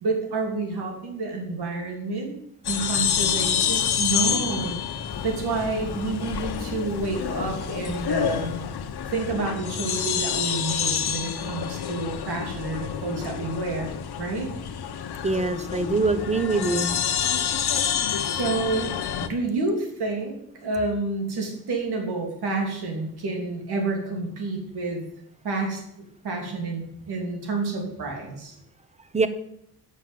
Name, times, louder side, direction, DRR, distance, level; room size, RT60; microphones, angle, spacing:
voice 1, 0.0-2.4 2.7-4.8 5.2-8.5 9.1-14.5 18.2-19.0 19.2-20.3 20.6-25.0 25.4-25.8 26.2-28.5, right 3 dB, 80° right, 1 dB, 3.0 m, -29 dB
sound 1, 2.6-19.3, left 8 dB, 80° left, 1.0 m, -28 dB
Run, 5.1-9.9, left 6 dB, 45° left, 0.7 m, -40 dB
voice 2, 15.2-16.9 29.1-29.3, right 3 dB, 15° right, 11 dB, 0.9 m, -23 dB
9.4 x 6.4 x 7.5 m, 0.75 s
cardioid pair, 100°, 38 cm